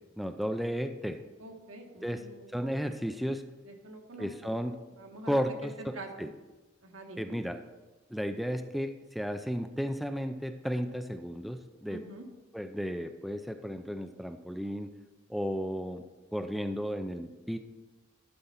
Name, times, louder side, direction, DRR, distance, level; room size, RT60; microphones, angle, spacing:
voice 1, 0.2-1.2 2.0-2.2 2.5-3.4 4.2-4.7 5.3-6.3 7.2-7.6 8.1-12.0 12.5-14.9 15.3-16.0 16.3-17.6, equal, ahead, 7 dB, 0.4 m, -34 dB
voice 2, 1.4-2.7 3.7-4.5 5.0-6.3 6.8-7.4 11.9-12.3, right 1 dB, 85° right, 3 dB, 1.4 m, -46 dB
11.5 x 4.2 x 5.7 m, 1.1 s
head